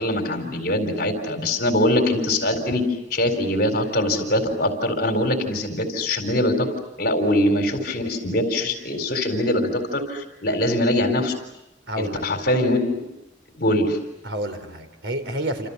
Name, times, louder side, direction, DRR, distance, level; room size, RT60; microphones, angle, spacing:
voice 1, 0.0-2.8 3.1-6.7 7.0-11.3 12.0-13.0 13.6-14.0, left 1 dB, 60° left, 6 dB, 4.2 m, -22 dB
voice 2, 11.9-12.2 14.2-15.7, right 1 dB, 80° right, 7 dB, 4.4 m, -29 dB
29.0 x 28.0 x 7.2 m, 0.88 s
head